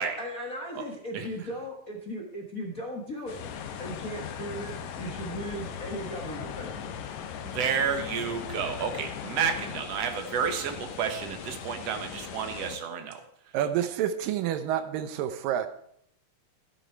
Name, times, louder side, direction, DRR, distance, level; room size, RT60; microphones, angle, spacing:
voice 1, 0.2-3.4 3.8-6.9, equal, 50° left, 1.0 m, -37 dB
sound 1, 3.3-12.8, left 6 dB, 65° left, 2.0 m, -42 dB
sound 2, 3.4-9.8, left 8 dB, 85° left, 1.4 m, -40 dB
voice 2, 7.4-13.2, right 7 dB, 60° right, 2.0 m, -30 dB
voice 3, 13.5-15.7, right 10 dB, 85° right, 2.5 m, -28 dB
12.5 x 10.5 x 4.5 m
omnidirectional pair, 3.9 m